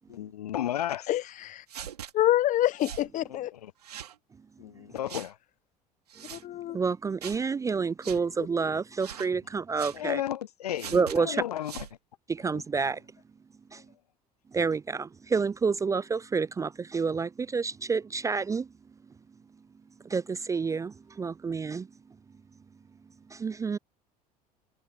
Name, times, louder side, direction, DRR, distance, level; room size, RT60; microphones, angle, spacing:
voice 1, 0.1-1.1 3.3-3.7 4.6-5.4 9.9-11.7 12.5-12.6, left 11 dB, 75° left, 0.6 m, -33 dB
voice 2, 1.1-1.6 2.1-3.5 6.3-6.8, left 13 dB, 40° left, 0.9 m, -26 dB
sound 1, 1.7-2.1 2.8-3.1 3.8-4.2 5.1-5.3 6.1-6.4 7.2-7.4 8.0-8.2 9.0-9.3 9.8-10.0 10.8-11.2 11.6-11.9, right 9 dB, 75° right, 3.0 m, -41 dB
voice 3, 6.7-10.2 10.9-11.4 12.3-13.0 13.7-13.8 14.5-18.7 20.0-21.9 23.3-23.8, right 5 dB, 15° right, 0.4 m, -29 dB
figure-of-eight pair, 65°, 20 cm